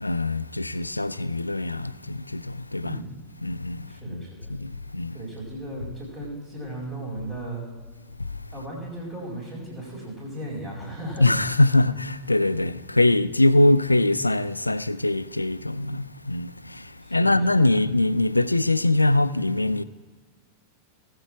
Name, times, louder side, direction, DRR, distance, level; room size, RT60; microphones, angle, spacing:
voice 1, 0.0-3.0 3.4-5.2 11.2-19.8, left 2 dB, 85° left, 0.4 m, -23 dB
voice 2, 3.9-4.5 5.1-7.6 8.5-11.3 17.0-17.4, right 1 dB, 25° right, 4.4 m, -36 dB
18.0 x 8.6 x 4.7 m
figure-of-eight pair, 90°, 0 cm